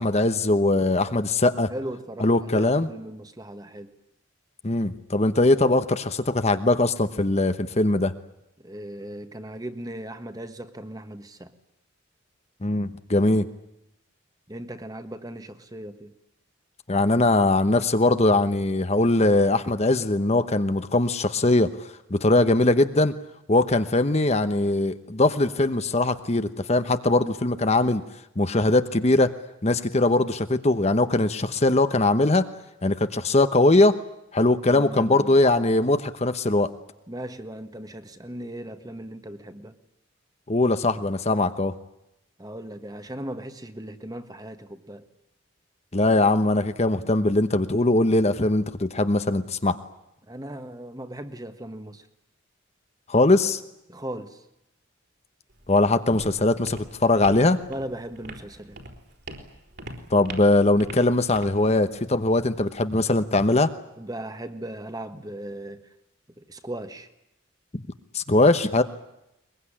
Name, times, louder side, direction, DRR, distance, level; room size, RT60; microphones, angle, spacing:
voice 1, 0.0-1.7 2.2-2.9 4.6-8.1 12.6-13.4 16.9-21.7 22.1-23.1 23.5-28.0 28.4-29.3 29.6-32.5 32.8-33.9 34.3-36.7 40.5-41.7 45.9-49.8 53.1-53.6 55.7-57.6 60.1-63.7 67.7-67.8 68.1-68.8, left 2 dB, 30° left, 10 dB, 1.0 m, -21 dB
voice 2, 1.7-3.9 8.6-11.5 14.5-16.1 34.7-35.4 37.1-39.7 42.4-45.0 50.3-52.1 53.9-54.4 57.7-58.8 64.0-65.8 66.4-67.1, right 1 dB, 20° right, 9 dB, 1.5 m, -37 dB
Walk footsteps, 55.5-63.5, right 1 dB, 55° right, 4.2 m, -43 dB
22.5 x 22.0 x 10.0 m, 0.84 s
head